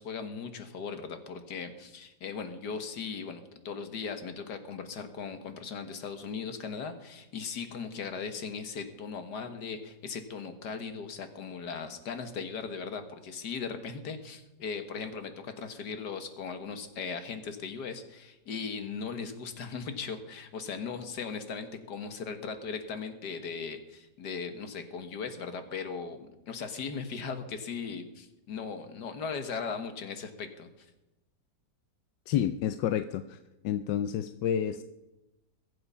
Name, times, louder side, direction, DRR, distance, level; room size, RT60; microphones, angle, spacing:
voice 1, 0.0-26.2 26.5-30.9, left 5 dB, 75° left, 8 dB, 2.0 m, -38 dB
voice 2, 32.3-33.4 33.6-34.8, left 10 dB, 90° left, 11 dB, 1.3 m, -29 dB
22.0 x 7.9 x 5.6 m, 0.98 s
omnidirectional pair, 1.8 m